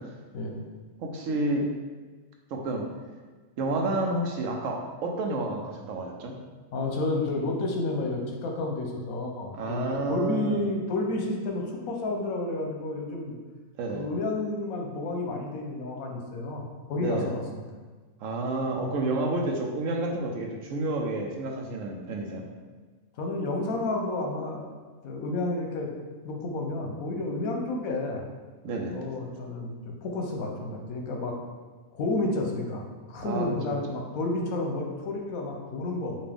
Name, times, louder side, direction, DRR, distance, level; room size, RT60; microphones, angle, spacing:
voice 1, 1.0-1.7 2.5-2.8 3.6-6.4 9.5-10.6 13.8-14.1 17.0-17.3 18.2-22.4 28.6-29.0 33.2-33.8, right 2 dB, 75° right, 1 dB, 1.0 m, -30 dB
voice 2, 6.7-13.3 13.9-17.6 23.2-24.7 25.0-25.9 26.2-28.2 28.9-31.4 31.9-36.2, left 2 dB, 80° left, 1 dB, 1.2 m, -31 dB
5.3 x 2.5 x 3.5 m, 1.4 s
omnidirectional pair, 1.4 m